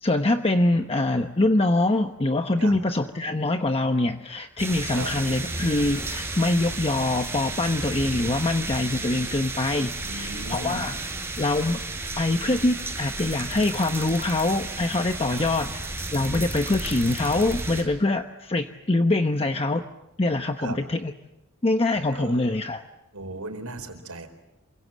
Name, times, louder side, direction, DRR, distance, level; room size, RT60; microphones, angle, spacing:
voice 1, 0.0-11.0 11.4-11.8 12.2-19.8 20.2-21.1 21.6-22.8, left 2 dB, 25° left, 6 dB, 1.0 m, -24 dB
sound 1, 4.6-17.8, right 2 dB, 10° right, 6.7 m, -33 dB
voice 2, 10.0-10.9 15.3-15.5 20.6-20.8 22.1-22.4 23.1-24.3, right 2 dB, 80° right, 6 dB, 4.6 m, -36 dB
sound 2, 13.4-14.4 16.1-17.5, left 1 dB, 5° left, 3.2 m, -42 dB
28.0 x 25.0 x 7.5 m, 0.93 s
head